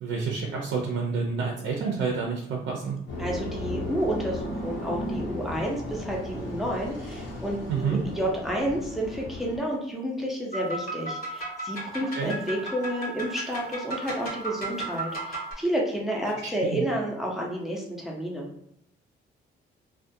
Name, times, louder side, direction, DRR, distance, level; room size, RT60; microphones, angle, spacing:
voice 1, 0.0-3.0 7.7-8.0 12.1-12.3 16.6-16.9, right 5 dB, 70° right, -1 dB, 0.5 m, -29 dB
sound 1, 3.1-9.6, left 1 dB, 80° left, 0.9 m, -35 dB
voice 2, 3.2-18.5, right 1 dB, ahead, -2 dB, 0.6 m, -30 dB
sound 2, 10.5-15.5, right 2 dB, 50° left, 1.0 m, -35 dB
2.3 x 2.2 x 2.6 m, 0.73 s
cardioid pair, 90°, 20 cm